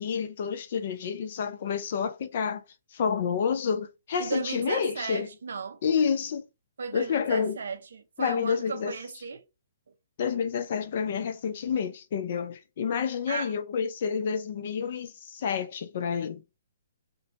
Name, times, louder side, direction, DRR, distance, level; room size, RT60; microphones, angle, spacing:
voice 1, 0.0-2.6 2.9-5.3 5.8-6.4 6.9-7.6 8.2-8.9 10.2-16.4, left 6 dB, 55° left, 0.5 m, -29 dB
voice 2, 4.2-5.8 6.8-9.4 13.3-13.5, right 5 dB, 70° right, 0.5 m, -35 dB
2.6 x 2.2 x 2.7 m
hypercardioid pair, 130°, 0 cm